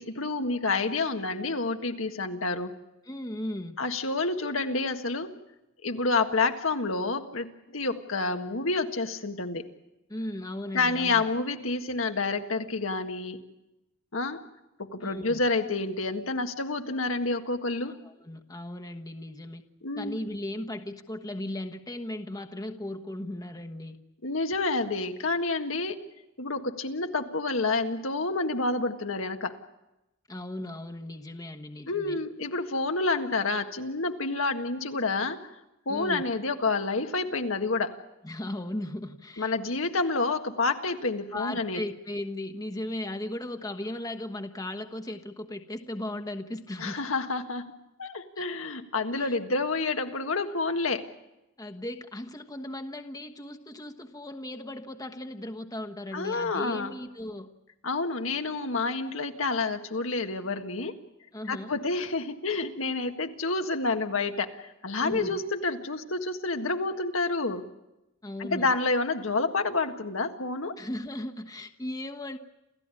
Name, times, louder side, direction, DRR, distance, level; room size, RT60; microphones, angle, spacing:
voice 1, 0.0-2.7 3.8-5.3 5.8-9.7 10.7-13.4 14.1-14.4 14.9-17.9 19.8-20.2 24.2-26.0 26.4-29.6 31.9-35.5 35.9-38.0 39.4-41.8 46.8-47.7 48.0-51.0 56.1-57.0 57.8-60.9 61.5-67.7 68.4-70.8, left 3 dB, 80° left, 6 dB, 1.7 m, -29 dB
voice 2, 3.1-3.8 10.1-11.2 15.0-15.4 17.8-19.6 20.0-24.0 30.3-32.2 35.9-36.2 38.2-39.7 41.3-47.0 48.4-48.5 49.1-49.4 51.6-57.5 61.3-61.8 65.0-65.4 68.2-68.7 70.8-72.4, left 1 dB, 20° left, 5 dB, 1.2 m, -37 dB
28.5 x 15.0 x 9.9 m, 0.93 s
head